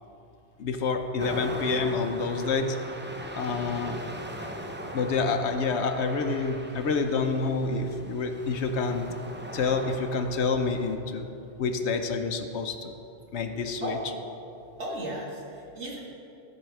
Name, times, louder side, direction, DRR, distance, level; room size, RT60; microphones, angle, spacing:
voice 1, 0.6-2.8 3.4-4.0 4.9-9.1 9.5-11.3 11.6-12.9 13.3-14.0, left 4 dB, 70° left, 6 dB, 1.0 m, -28 dB
sound 1, 1.2-10.9, right 1 dB, 15° right, 0.5 m, -40 dB
voice 2, 13.8-14.1 14.8-16.0, equal, 70° right, -3 dB, 2.1 m, -35 dB
14.0 x 4.9 x 5.9 m, 2.7 s
omnidirectional pair, 1.2 m